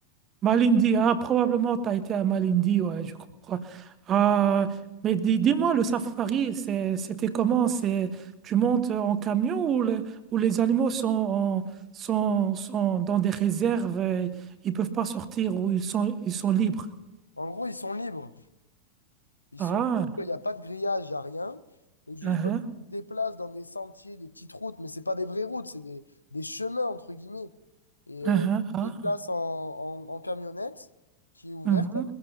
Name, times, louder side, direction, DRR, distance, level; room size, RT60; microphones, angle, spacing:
voice 1, 0.4-3.1 3.5-4.8 5.0-8.2 8.4-11.7 11.9-16.9 19.6-20.1 22.2-22.6 28.2-29.0 31.6-32.0, right 8 dB, 30° right, 1.1 m, -25 dB
voice 2, 17.4-18.3 19.5-19.8 20.2-21.6 22.1-22.5 22.9-27.5 28.1-28.5 28.8-30.9 31.4-31.9, left 2 dB, 85° left, 0.6 m, -34 dB
23.5 x 15.5 x 2.8 m
figure-of-eight pair, 90°, 0 cm